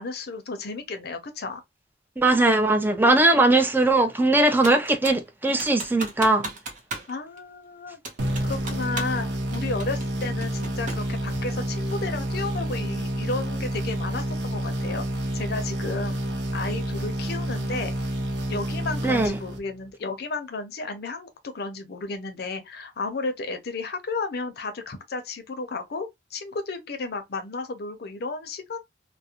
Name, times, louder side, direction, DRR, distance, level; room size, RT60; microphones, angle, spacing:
voice 1, 0.0-1.6 7.1-8.0 8.4-15.1 15.3-16.2 16.5-17.9 18.5-28.8, left 3 dB, 60° left, 0.5 m, -33 dB
voice 2, 2.2-6.5 19.0-19.4, right 2 dB, 10° right, 0.4 m, -20 dB
Computer keyboard, 4.6-5.3 5.6-7.1 7.4-7.5 8.0-9.2 9.5-11.1, right 3 dB, 45° right, 0.7 m, -36 dB
sound 1, 8.2-19.9, right 1 dB, 85° right, 0.7 m, -29 dB
2.4 x 2.0 x 2.7 m
head